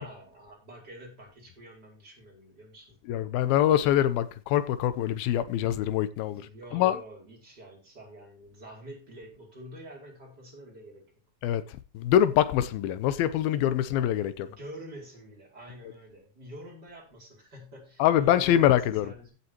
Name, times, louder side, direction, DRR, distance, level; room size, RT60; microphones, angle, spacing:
voice 1, 0.0-3.0 6.3-11.0 14.4-19.3, right 1 dB, 25° right, 5.2 m, -47 dB
voice 2, 3.1-7.0 11.4-14.5 18.0-19.1, left 11 dB, 85° left, 2.7 m, -24 dB
16.0 x 8.8 x 3.0 m
omnidirectional pair, 4.2 m